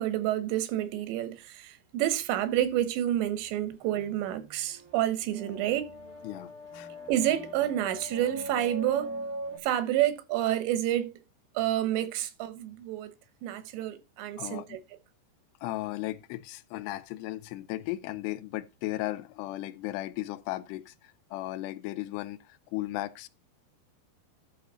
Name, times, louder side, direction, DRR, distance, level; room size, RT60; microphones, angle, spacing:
voice 1, 0.0-5.9 7.1-9.1 9.6-11.1 11.6-13.1 13.4-14.8, right 12 dB, 90° right, 3.4 m, -29 dB
sound 1, 3.7-9.6, equal, 65° right, 0.8 m, -41 dB
voice 2, 6.2-6.9 14.4-14.8 15.6-23.3, left 16 dB, 80° left, 2.6 m, -36 dB
11.5 x 6.0 x 3.9 m
omnidirectional pair, 4.9 m